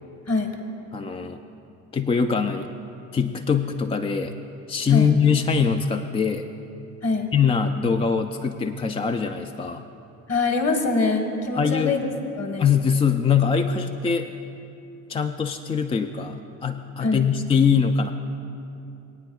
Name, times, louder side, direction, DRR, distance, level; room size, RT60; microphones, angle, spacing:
voice 1, 0.9-1.4 1.9-2.7 3.1-4.4 4.7-6.5 7.3-9.9 11.5-12.0 12.6-14.3 15.1-18.1, left 6 dB, 15° left, 7 dB, 0.3 m, -22 dB
voice 2, 10.3-12.1 12.4-12.6 17.0-17.3, left 3 dB, 35° left, 4 dB, 1.5 m, -24 dB
22.0 x 9.2 x 2.3 m, 2.8 s
hypercardioid pair, 55°, 41 cm